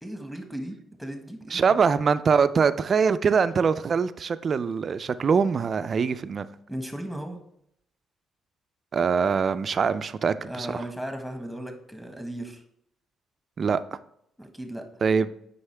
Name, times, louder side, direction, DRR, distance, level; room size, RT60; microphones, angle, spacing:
voice 1, 0.0-1.7 6.7-7.4 10.5-12.6 14.4-14.9, right 1 dB, ahead, 4 dB, 1.3 m, -36 dB
voice 2, 1.5-6.5 8.9-10.7 13.6-13.8 15.0-15.3, right 6 dB, 45° right, 13 dB, 0.4 m, -23 dB
8.0 x 5.4 x 3.3 m, 0.74 s
cardioid pair, 90°, 0 cm